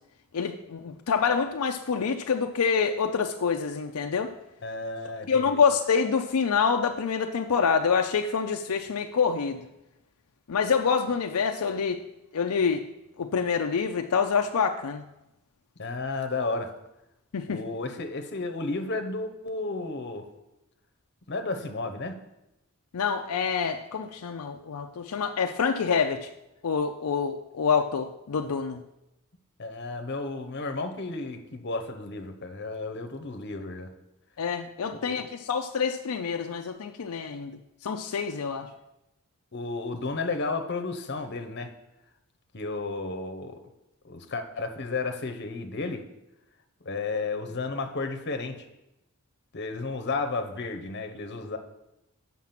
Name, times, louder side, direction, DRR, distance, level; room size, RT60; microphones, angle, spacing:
voice 1, 0.3-4.3 5.3-9.7 10.5-12.0 12.3-12.8 13.2-15.0 17.3-17.6 22.9-26.3 26.6-28.8 34.4-37.5 37.8-38.7, left 6 dB, 85° left, 4 dB, 0.5 m, -26 dB
voice 2, 4.6-5.6 15.8-16.7 17.5-20.2 21.3-22.2 29.6-33.9 34.9-35.3 39.5-41.7 42.5-43.6 44.0-46.0 46.8-48.7 49.5-51.6, left 3 dB, 50° left, 7 dB, 0.9 m, -33 dB
7.3 x 5.9 x 5.9 m, 0.90 s
head